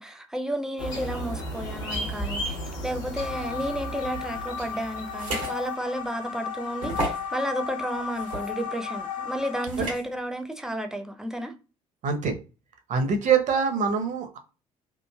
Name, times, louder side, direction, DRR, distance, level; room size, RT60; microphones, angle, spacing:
voice 1, 0.0-2.6 2.8-11.5, right 1 dB, 5° right, 0.6 m, -32 dB
sound 1, 0.8-5.7, equal, 70° left, 1.0 m, -35 dB
sound 2, 3.2-9.7, left 6 dB, 50° left, 0.5 m, -35 dB
sound 3, 5.1-5.5 6.0-6.1 6.8-7.3 8.1-8.5 9.7-10.0, right 1 dB, 85° right, 1.3 m, -31 dB
voice 2, 12.0-12.4 12.9-14.4, right 6 dB, 45° right, 0.8 m, -24 dB
3.2 x 2.5 x 2.2 m
figure-of-eight pair, 55°, 17 cm